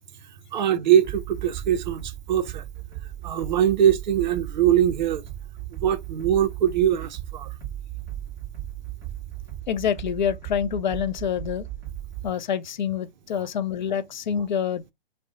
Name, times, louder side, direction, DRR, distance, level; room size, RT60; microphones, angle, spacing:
voice 1, 0.5-2.6 3.2-5.2 5.8-7.5, right 10 dB, 50° right, 0.5 m, -22 dB
sound 1, 1.0-12.3, right 12 dB, 10° right, 0.8 m, -37 dB
voice 2, 9.7-11.7 12.2-14.9, left 8 dB, 50° left, 0.4 m, -27 dB
2.5 x 2.0 x 3.7 m
figure-of-eight pair, 125°, 30 cm